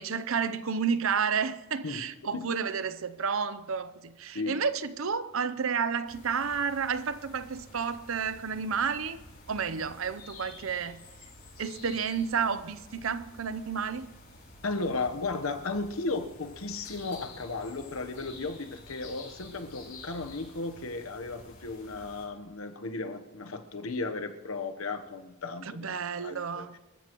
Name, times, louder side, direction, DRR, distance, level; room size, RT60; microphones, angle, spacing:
voice 1, 0.0-9.2 9.5-11.0 11.6-14.1 25.7-26.8, right 6 dB, 65° right, 0.7 m, -31 dB
voice 2, 1.8-2.5 4.3-4.6 14.6-26.8, left 3 dB, 70° left, 1.0 m, -35 dB
sound 1, 6.0-22.3, left 2 dB, 45° left, 5.4 m, -50 dB
26.0 x 14.0 x 3.0 m
head